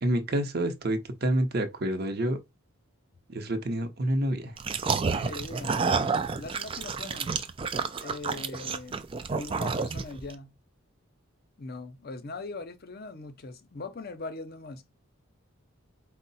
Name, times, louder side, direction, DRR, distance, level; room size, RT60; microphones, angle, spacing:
voice 1, 0.0-2.4 3.3-4.6 5.0-5.3, right 1 dB, 45° right, 0.7 m, -28 dB
sound 1, 4.6-10.3, right 5 dB, 25° right, 0.3 m, -30 dB
voice 2, 5.2-7.4 8.0-9.1 9.3-10.6 11.6-14.8, left 3 dB, 45° left, 0.6 m, -41 dB
4.6 x 2.1 x 4.0 m
head